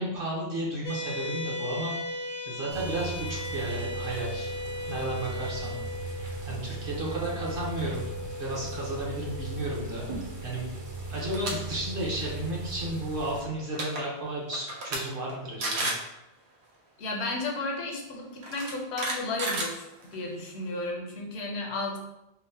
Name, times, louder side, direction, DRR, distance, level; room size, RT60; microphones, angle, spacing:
voice 1, 0.0-2.0 2.5-4.5 4.9-5.8 6.4-8.1 8.4-10.1 10.4-10.7 11.1-15.9, right 1 dB, 60° right, -4 dB, 1.0 m, -33 dB
sound 1, 0.8-13.5, left 1 dB, 50° left, 0.5 m, -39 dB
sound 2, 2.7-13.4, right 2 dB, 40° right, 0.6 m, -38 dB
sound 3, 11.2-11.5 11.9-12.2 13.4-13.5 13.7-14.0 14.5-15.0 15.3-15.4 15.6-16.1 17.3-17.4 18.4-20.3, right 2 dB, 85° right, 1.0 m, -31 dB
voice 2, 17.0-22.0, left 2 dB, 80° left, 0 dB, 0.9 m, -33 dB
3.9 x 2.1 x 2.7 m, 0.93 s
omnidirectional pair, 1.1 m